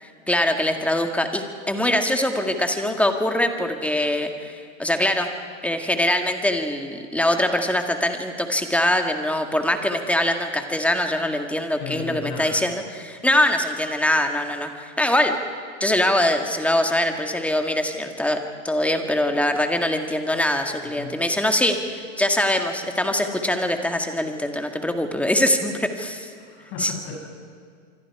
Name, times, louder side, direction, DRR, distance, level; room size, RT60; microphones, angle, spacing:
voice 1, 0.0-5.3 5.6-15.3 15.8-18.4 18.6-21.8 22.2-26.3 26.8-26.9, left 1 dB, 5° left, 5 dB, 1.9 m, -23 dB
voice 2, 11.8-12.6 20.8-21.2 26.4-27.2, left 4 dB, 45° left, 0 dB, 6.8 m, -35 dB
26.0 x 24.5 x 4.8 m, 2.1 s
hypercardioid pair, 120°, 39 cm